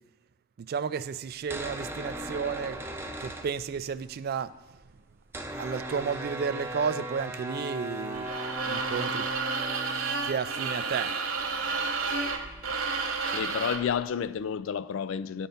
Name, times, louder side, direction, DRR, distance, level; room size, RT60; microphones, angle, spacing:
voice 1, 0.6-2.8 3.2-4.5 5.6-9.3 10.2-11.2, right 6 dB, 50° right, 0.3 m, -32 dB
sound 1, 1.4-4.1 4.4-4.5 4.6-14.1, right 1 dB, 10° right, 0.6 m, -39 dB
sound 2, 8.1-13.9, right 4 dB, 75° right, 0.9 m, -31 dB
voice 2, 13.3-15.5, left 7 dB, 70° left, 0.3 m, -30 dB
12.5 x 4.3 x 5.2 m
head